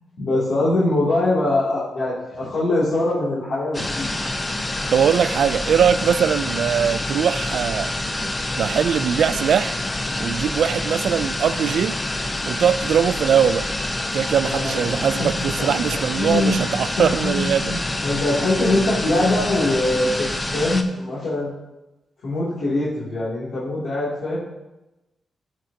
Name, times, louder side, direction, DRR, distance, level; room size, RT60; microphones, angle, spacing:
voice 1, 0.2-4.1 14.2-15.8 16.2-21.5 22.2-24.4, left 2 dB, 85° left, 2.6 m, -23 dB
sound 1, 3.7-20.8, left 1 dB, 20° left, 0.7 m, -27 dB
voice 2, 4.9-7.9 8.6-9.8 10.2-12.0 12.5-13.7 14.1-17.7, right 8 dB, 85° right, 0.3 m, -21 dB
14.0 x 6.4 x 2.8 m
wide cardioid pair, 125°, 0 cm